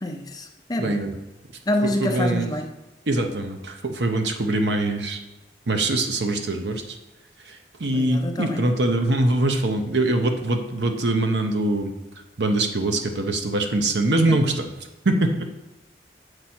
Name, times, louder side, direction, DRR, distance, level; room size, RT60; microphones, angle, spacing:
voice 1, 0.0-1.0 1.7-2.7 7.9-8.6 14.3-14.4, left 1 dB, 20° left, 4 dB, 0.6 m, -27 dB
voice 2, 0.8-1.2 1.8-2.5 3.1-5.2 5.7-7.0 7.5-11.9 12.4-14.7 15.0-15.4, right 2 dB, 85° right, 5 dB, 0.8 m, -23 dB
7.9 x 4.7 x 4.4 m, 0.99 s
head